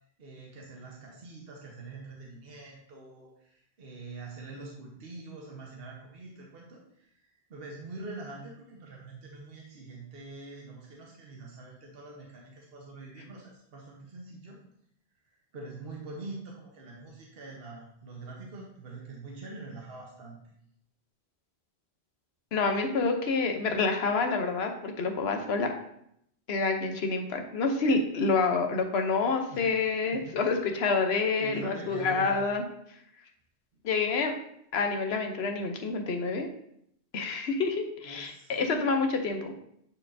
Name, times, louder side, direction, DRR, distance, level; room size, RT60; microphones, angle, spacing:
voice 1, 0.2-7.1 7.5-14.6 15.5-20.4 29.5-29.8 30.1-30.3 31.4-32.4 38.0-38.6, right 3 dB, 60° right, -2 dB, 1.3 m, -44 dB
voice 2, 22.5-25.7 26.5-32.6 33.8-34.4 34.7-36.5 37.1-39.5, left 4 dB, 70° left, 4 dB, 1.1 m, -28 dB
9.2 x 4.4 x 2.7 m, 0.72 s
omnidirectional pair, 1.1 m